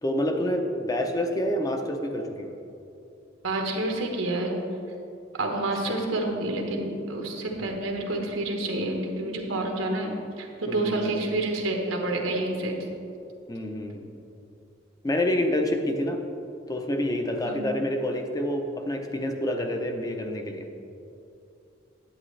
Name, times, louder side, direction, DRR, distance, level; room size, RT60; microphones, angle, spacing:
voice 1, 0.0-2.5 5.9-6.0 10.7-11.4 13.5-14.2 15.0-16.2 16.7-20.7, left 1 dB, 20° left, 4 dB, 0.6 m, -28 dB
voice 2, 3.4-4.5 5.3-12.8 17.4-17.7, right 2 dB, 85° right, 1 dB, 1.2 m, -28 dB
10.0 x 8.4 x 3.2 m, 2.7 s
head